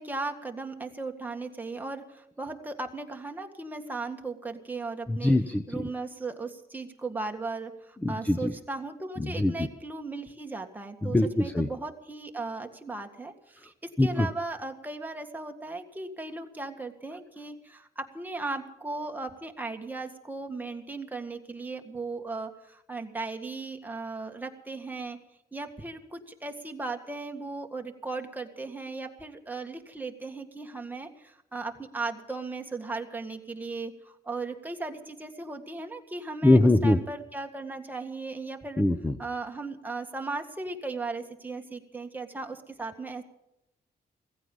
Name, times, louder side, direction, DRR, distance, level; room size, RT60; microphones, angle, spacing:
voice 1, 0.0-5.3 5.7-25.2 25.5-38.8 39.2-43.2, right 3 dB, 10° right, 3 dB, 1.8 m, -37 dB
voice 2, 5.1-5.8 8.0-8.5 9.2-9.7 11.0-11.7 14.0-14.3 36.4-37.0 38.8-39.1, left 2 dB, 10° left, 10 dB, 0.7 m, -23 dB
16.5 x 15.5 x 5.4 m, 0.86 s
wide cardioid pair, 140°, 16 cm